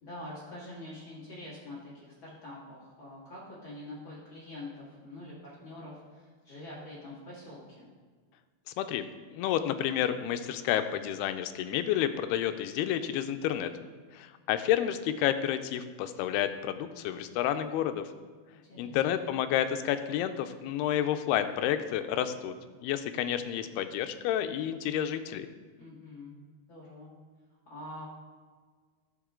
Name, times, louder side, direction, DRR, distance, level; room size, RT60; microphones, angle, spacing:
voice 1, 0.0-7.9 18.7-19.2 25.8-26.4 26.7-27.1 27.7-28.1, left 1 dB, 35° left, -7 dB, 2.5 m, -45 dB
voice 2, 8.8-13.7 14.1-18.1 18.8-22.5 22.8-25.5, left 10 dB, 85° left, 9 dB, 2.6 m, -30 dB
14.5 x 7.2 x 3.7 m, 1.5 s
omnidirectional pair, 4.6 m